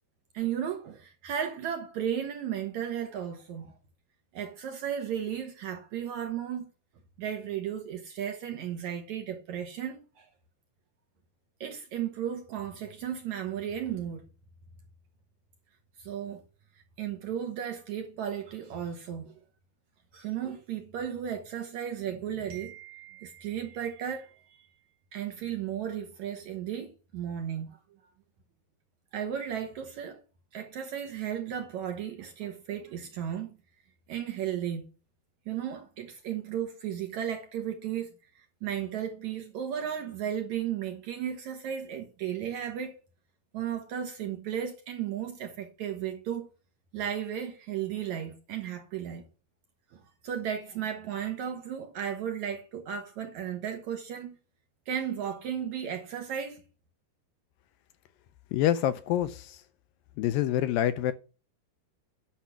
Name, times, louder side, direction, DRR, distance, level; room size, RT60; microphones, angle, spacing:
voice 1, 0.3-3.7 4.3-6.7 7.2-10.3 11.6-14.3 16.0-16.4 17.0-19.3 20.1-24.7 25.1-27.8 29.1-30.2 30.5-33.5 34.1-34.9 35.5-43.0 43.5-46.5 46.9-49.3 49.9-54.4 54.9-56.6, right 9 dB, 65° right, 1.9 m, -35 dB
voice 2, 58.5-59.6 60.2-61.1, left 12 dB, 80° left, 2.1 m, -26 dB
10.0 x 6.3 x 5.7 m
omnidirectional pair, 4.4 m